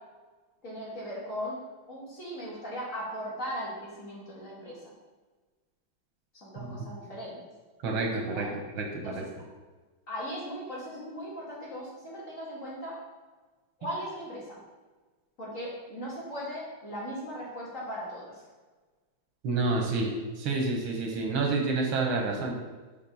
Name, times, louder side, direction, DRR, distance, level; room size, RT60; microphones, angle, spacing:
voice 1, 0.6-1.6 1.9-4.9 6.3-7.4 8.2-8.5 9.0-9.5 10.1-13.0 13.8-14.6 15.4-18.4, equal, 40° left, -7 dB, 2.7 m, -38 dB
voice 2, 7.8-8.5 8.8-9.1 19.4-20.1 20.4-22.5, right 3 dB, 90° right, 1 dB, 2.0 m, -28 dB
5.9 x 5.2 x 5.4 m, 1.3 s
omnidirectional pair, 2.2 m